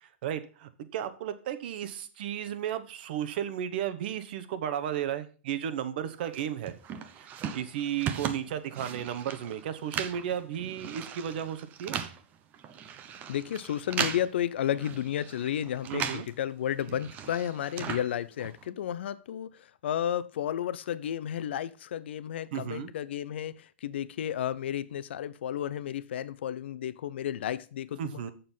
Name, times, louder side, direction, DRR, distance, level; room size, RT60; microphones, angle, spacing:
voice 1, 0.0-6.7 7.2-11.9 15.9-16.2 22.5-22.9 28.0-28.3, right 10 dB, 55° right, 11 dB, 1.1 m, -34 dB
sound 1, 6.3-16.4 16.6-18.7, right 8 dB, 25° right, 0.8 m, -38 dB
voice 2, 13.3-28.2, left 10 dB, 70° left, 16 dB, 0.7 m, -32 dB
7.6 x 6.9 x 5.6 m, 0.38 s
hypercardioid pair, 150°, 6 cm